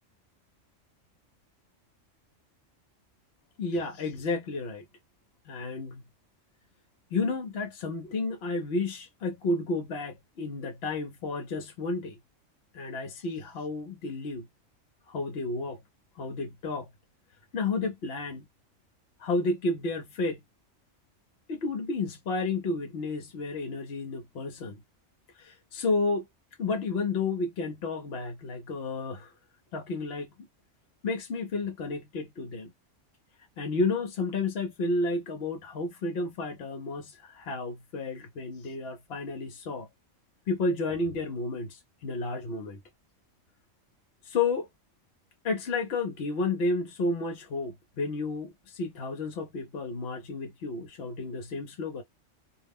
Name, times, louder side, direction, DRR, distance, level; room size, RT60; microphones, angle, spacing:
voice 1, 3.6-4.8 5.5-6.1 7.1-12.2 12.7-14.4 15.1-15.8 16.2-16.9 17.5-18.5 19.2-20.4 21.5-24.8 25.3-26.3 26.6-29.3 29.7-30.3 31.0-32.7 33.6-39.9 40.5-42.8 44.2-44.7 45.4-52.0, left 3 dB, 60° left, 0.8 m, -31 dB
2.4 x 2.0 x 3.4 m
omnidirectional pair, 1.3 m